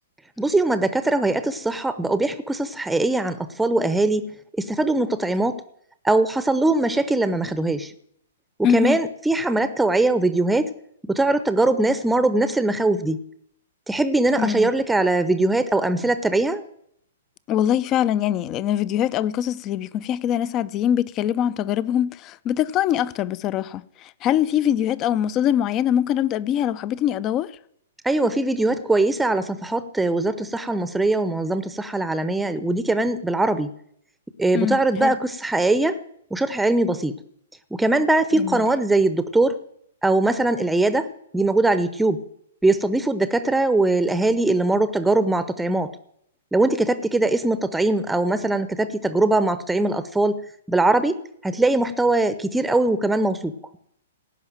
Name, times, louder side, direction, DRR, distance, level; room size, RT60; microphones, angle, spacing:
voice 1, 0.4-5.6 6.0-7.9 8.7-10.7 11.1-13.2 13.9-16.6 28.0-33.7 34.4-36.0 36.3-37.2 37.7-39.6 40.0-41.1 41.3-42.2 42.6-45.9 46.5-50.4 50.7-53.5, right 2 dB, 5° right, 0.7 m, -21 dB
voice 2, 8.6-9.0 14.4-14.7 17.5-27.5 34.5-35.2 38.3-38.6, left 10 dB, 30° left, 0.5 m, -23 dB
16.5 x 5.7 x 9.0 m
figure-of-eight pair, 115°, 0 cm